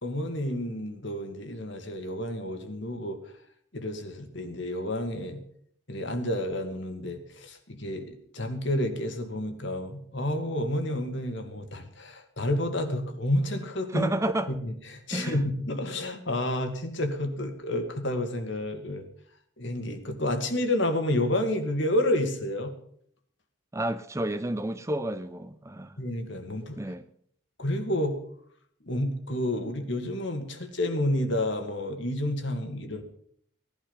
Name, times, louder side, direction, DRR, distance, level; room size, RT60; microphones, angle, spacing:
voice 1, 0.0-3.2 3.7-5.4 5.9-14.1 14.5-19.0 19.6-22.7 26.0-26.8 27.6-28.2 28.8-33.0, left 1 dB, 60° left, 6 dB, 2.1 m, -30 dB
voice 2, 13.9-14.5 15.1-15.4 23.7-26.0 26.8-27.1, right 1 dB, 15° right, 12 dB, 0.5 m, -30 dB
17.5 x 11.5 x 5.6 m, 0.65 s
head